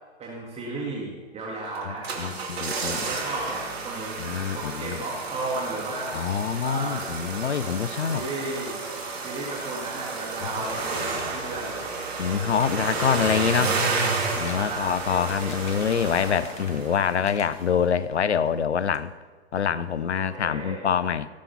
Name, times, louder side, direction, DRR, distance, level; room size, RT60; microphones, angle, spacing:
voice 1, 0.2-2.4 2.9-4.2 4.5-6.2 6.6-7.1 8.1-8.8 9.2-12.0 12.6-12.8 14.6-15.2 20.2-20.9, right 2 dB, 20° right, -3 dB, 2.1 m, -34 dB
sound 1, 1.8-17.3 17.5-17.6, right 4 dB, 70° right, 3.0 m, -31 dB
voice 2, 1.9-3.0 4.2-5.0 6.1-8.2 12.2-13.8 14.4-19.1 19.5-21.3, left 7 dB, 90° left, 16 dB, 0.6 m, -25 dB
sound 2, 12.6-13.2 13.8-14.7 15.1-16.9 17.2-18.1 18.5-18.6 18.9-19.0, left 6 dB, 20° left, 1.1 m, -46 dB
18.0 x 7.2 x 5.6 m, 1.5 s
hypercardioid pair, 115°, 33 cm